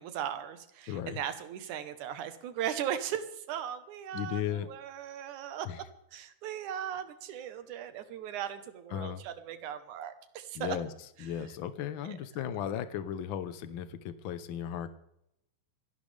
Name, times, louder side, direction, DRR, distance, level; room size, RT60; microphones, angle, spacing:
voice 1, 0.0-5.7 6.1-10.8 12.1-12.2, right 9 dB, 80° right, 10 dB, 2.6 m, -38 dB
voice 2, 0.9-1.2 4.1-4.7 5.6-5.8 8.9-9.2 10.5-10.9 11.2-14.9, left 9 dB, 80° left, 12 dB, 1.1 m, -36 dB
26.5 x 11.5 x 3.4 m, 0.81 s
omnidirectional pair, 3.4 m